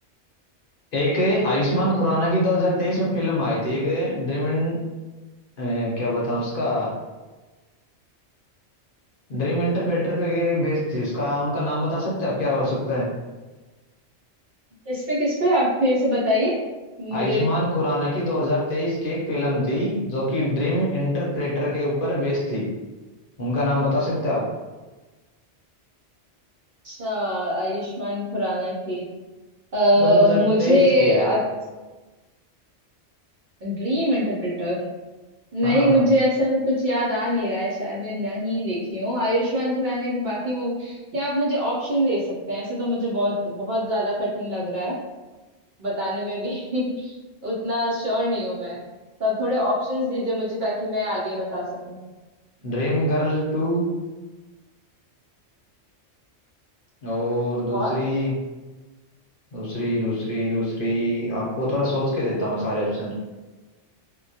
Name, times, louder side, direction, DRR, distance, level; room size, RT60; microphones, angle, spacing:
voice 1, 0.9-4.8 5.6-6.9 9.3-13.1 17.1-22.6 23.4-24.5 30.0-31.2 35.6-36.0 52.6-53.9 57.0-58.3 59.5-63.1, left 1 dB, 55° left, -6 dB, 0.8 m, -24 dB
voice 2, 14.9-16.6 17.0-17.5 26.8-29.0 29.7-31.4 33.6-34.8 35.5-44.9 45.8-47.1 47.4-48.8 49.2-52.0 57.7-57.9, equal, 55° right, -7 dB, 0.6 m, -23 dB
2.2 x 2.1 x 2.6 m, 1.2 s
omnidirectional pair, 1.2 m